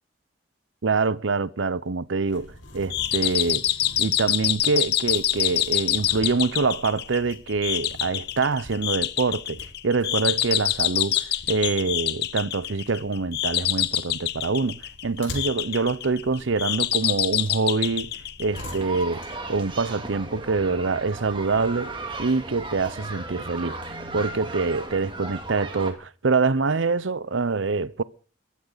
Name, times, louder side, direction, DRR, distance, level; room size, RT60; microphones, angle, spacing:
voice 1, 0.8-3.6 4.0-18.1 18.4-28.0, right 4 dB, 80° right, 0.7 m, -25 dB
sound 1, 2.3-19.7, left 2 dB, 80° left, 5.5 m, -44 dB
sound 2, 2.9-19.0, left 13 dB, 55° left, 0.9 m, -26 dB
sound 3, 18.5-25.9, right 2 dB, 25° right, 2.7 m, -36 dB
22.5 x 14.5 x 4.0 m
head